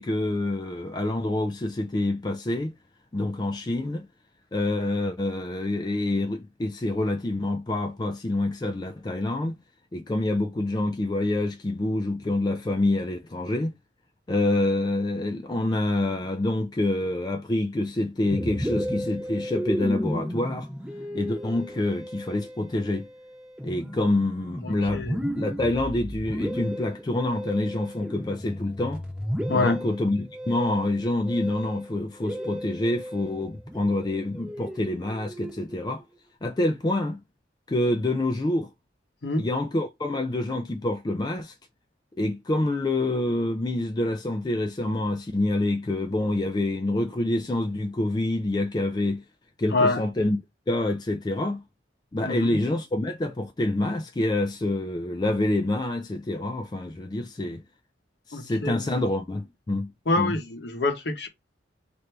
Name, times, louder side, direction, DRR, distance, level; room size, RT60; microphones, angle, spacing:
voice 1, 0.0-2.7 3.1-4.1 4.5-9.6 9.9-13.7 14.3-20.7 21.1-23.1 23.6-25.1 25.4-29.0 29.5-36.0 36.4-37.2 37.7-38.7 39.4-41.5 42.2-49.2 49.6-50.4 50.7-51.6 52.1-57.6 58.3-59.9 60.2-60.3, left 1 dB, 20° left, 0.4 m, -27 dB
Musical instrument, 18.3-35.9, equal, 5° right, 0.9 m, -34 dB
voice 2, 24.6-25.2 29.5-29.8 39.2-39.5 49.7-50.0 52.2-52.6 58.3-59.0 60.1-61.3, left 2 dB, 60° left, 0.8 m, -26 dB
3.3 x 2.6 x 4.3 m
head